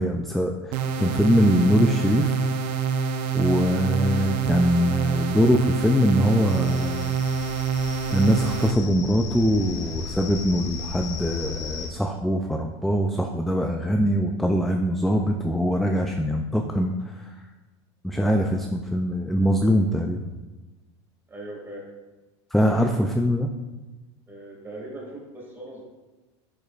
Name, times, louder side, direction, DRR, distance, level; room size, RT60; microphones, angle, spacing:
voice 1, 0.0-2.5 3.3-7.2 8.1-17.3 18.0-20.2 22.5-23.5, equal, ahead, 4 dB, 0.3 m, -22 dB
sound 1, 0.7-8.7, right 5 dB, 55° right, 0.6 m, -26 dB
sound 2, 6.5-11.9, left 6 dB, 80° left, 1.1 m, -36 dB
voice 2, 21.3-21.9 24.3-25.8, right 1 dB, 15° right, -2 dB, 2.2 m, -39 dB
10.5 x 5.0 x 2.4 m, 1.2 s
supercardioid pair, 125°, 15 cm